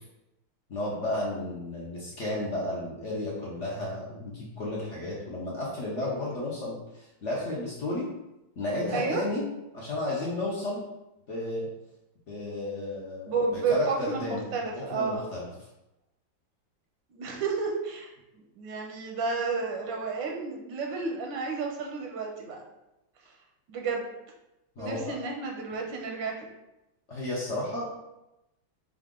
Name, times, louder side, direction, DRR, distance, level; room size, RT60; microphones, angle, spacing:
voice 1, 0.7-8.1 8.6-9.5 9.7-10.8 11.3-11.7 12.3-15.5 24.8-25.2 27.1-27.9, left 1 dB, 55° left, -5 dB, 0.9 m, -33 dB
voice 2, 8.9-9.2 13.3-15.3 17.1-22.6 23.7-24.1 24.8-26.3, right 4 dB, 85° right, 1 dB, 1.5 m, -31 dB
4.8 x 2.5 x 3.6 m, 0.92 s
omnidirectional pair, 2.0 m